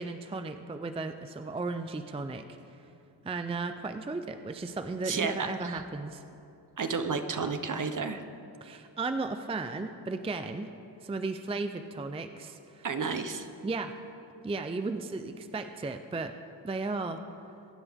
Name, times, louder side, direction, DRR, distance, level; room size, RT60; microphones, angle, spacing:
voice 1, 0.0-2.5 3.2-6.2 8.6-10.7 11.0-12.9 13.6-13.9 14.4-16.3 16.6-17.2, right 3 dB, 15° right, 8 dB, 0.4 m, -35 dB
voice 2, 5.1-5.8 6.8-8.2 12.8-13.5, right 5 dB, 45° right, 8 dB, 0.9 m, -32 dB
22.0 x 10.0 x 3.6 m, 2.6 s
wide cardioid pair, 125°, 42 cm